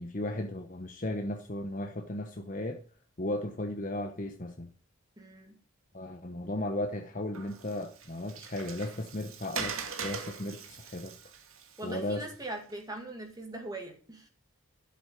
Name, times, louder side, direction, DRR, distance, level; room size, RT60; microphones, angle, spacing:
voice 1, 0.0-2.8 3.2-4.7 5.9-11.1 11.8-12.3, left 1 dB, 40° left, 5 dB, 1.0 m, -35 dB
voice 2, 5.2-5.6 11.8-14.3, right 2 dB, 20° right, 2 dB, 2.2 m, -41 dB
Water, 7.3-12.7, right 6 dB, 80° right, 2.1 m, -42 dB
12.0 x 7.6 x 6.9 m, 0.39 s
head